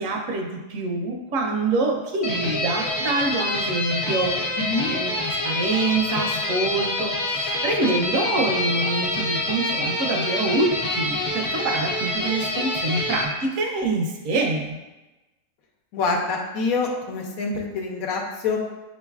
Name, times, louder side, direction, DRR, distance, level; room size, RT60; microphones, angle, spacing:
voice 1, 0.0-4.4 4.9-14.8, right 3 dB, 70° right, 2 dB, 1.0 m, -26 dB
sound 1, 2.2-13.2, left 1 dB, 60° left, 1.0 m, -26 dB
voice 2, 4.6-4.9 15.9-18.6, left 4 dB, 80° left, 1 dB, 1.1 m, -26 dB
6.2 x 3.1 x 2.3 m, 1.1 s
omnidirectional pair, 1.5 m